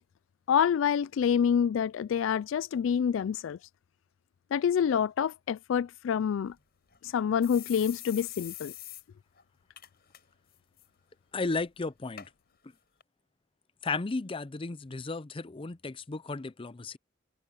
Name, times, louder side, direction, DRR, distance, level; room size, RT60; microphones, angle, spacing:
voice 1, 0.5-3.6 4.5-6.5 7.0-8.7, left 8 dB, 80° left, 0.3 m, -27 dB
sound 1, 6.5-6.6 6.9-7.0 7.4-9.0 9.4-9.5 9.8-10.2 10.5-10.9 11.5-11.6 12.2-12.3 13.0-13.1, left 13 dB, 55° left, 7.2 m, -44 dB
voice 2, 11.3-12.3 13.8-17.0, left 3 dB, 30° left, 0.6 m, -34 dB
head